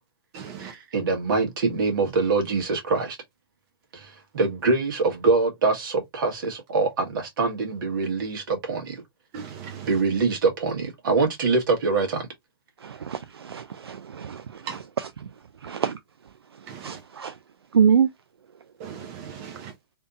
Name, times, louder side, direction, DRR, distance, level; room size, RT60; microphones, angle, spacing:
voice 1, 0.3-0.8 9.3-10.0 14.7-14.8 16.7-17.0 18.8-19.8, right 7 dB, 40° right, 0.8 m, -38 dB
voice 2, 0.9-3.2 3.9-9.0 9.9-12.3, right 4 dB, 55° right, 1.6 m, -24 dB
voice 3, 12.8-14.7 15.6-16.0 16.8-17.3 17.7-18.1, right 7 dB, 80° right, 0.4 m, -24 dB
3.4 x 2.9 x 2.5 m
hypercardioid pair, 120°, 13 cm